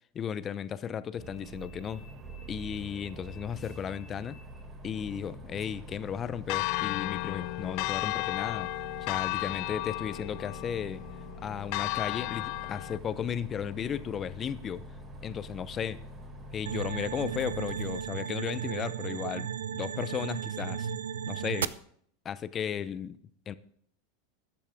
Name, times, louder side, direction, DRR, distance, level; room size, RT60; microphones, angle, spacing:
voice 1, 0.1-2.0 2.5-4.4 4.8-8.7 9.0-11.0 11.4-14.8 15.2-16.0 16.5-20.9 21.3-21.7 22.2-23.2 23.5-23.6, left 8 dB, 30° left, 16 dB, 0.7 m, -35 dB
Bus, 1.2-18.1, right 1 dB, 25° right, 4.0 m, -46 dB
Church bell, 6.5-13.0, left 23 dB, 60° left, 0.3 m, -34 dB
sound 1, 16.7-21.7, right 8 dB, 80° right, 0.5 m, -35 dB
14.0 x 10.0 x 3.6 m, 0.62 s
hypercardioid pair, 95°, 0 cm